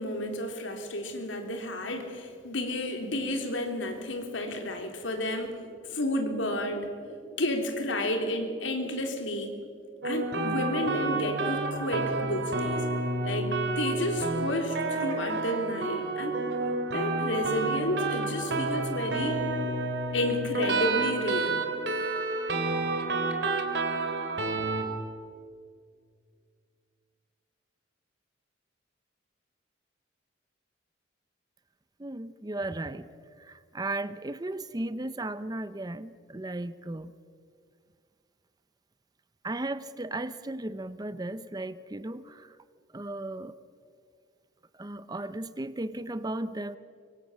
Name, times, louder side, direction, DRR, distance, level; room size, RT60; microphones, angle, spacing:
voice 1, 0.0-9.6 10.0-12.8 13.2-16.4 16.9-19.5 20.1-21.9, left 1 dB, 75° left, 4 dB, 3.5 m, -31 dB
sound 1, 10.0-24.8, right 2 dB, 60° right, 2.9 m, -30 dB
voice 2, 32.0-33.1 33.4-37.1 39.4-42.5 42.9-43.6 44.8-46.8, right 2 dB, 20° right, 14 dB, 0.6 m, -35 dB
24.0 x 24.0 x 7.4 m, 2.2 s
head